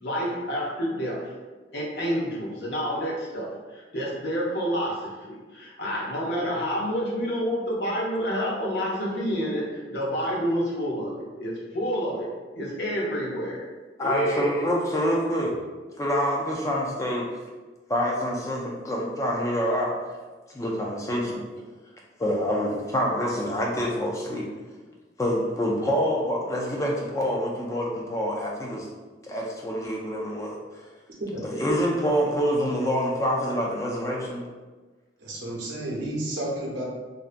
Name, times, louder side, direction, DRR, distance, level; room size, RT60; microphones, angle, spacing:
voice 1, 0.0-1.3 1.7-5.0 5.3-12.3 12.6-13.6 14.0-14.5, equal, 70° left, -4 dB, 0.7 m, -28 dB
voice 2, 14.0-15.5 16.0-17.3 17.9-19.9 20.5-21.4 22.2-24.4 25.2-28.9 29.2-30.8 31.4-34.5, equal, 15° left, -2 dB, 0.3 m, -26 dB
voice 3, 35.2-36.8, right 1 dB, 85° right, -4 dB, 0.7 m, -31 dB
2.6 x 2.1 x 2.4 m, 1.3 s
head